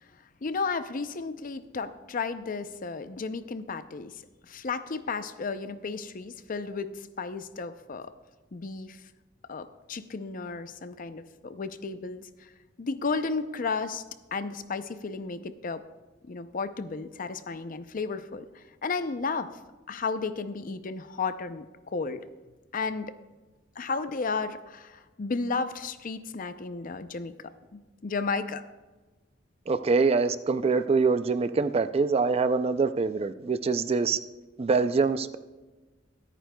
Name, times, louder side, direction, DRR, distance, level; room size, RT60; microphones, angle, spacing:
voice 1, 0.4-4.2 4.5-8.1 8.5-9.0 9.5-12.5 12.8-14.0 14.3-15.8 16.3-19.5 19.9-22.2 22.7-23.1 23.8-27.4 27.7-28.6, left 4 dB, 45° left, 11 dB, 0.5 m, -33 dB
voice 2, 29.7-34.2 34.6-35.4, right 4 dB, 30° right, 11 dB, 0.4 m, -24 dB
24.0 x 9.1 x 2.3 m, 1.2 s
head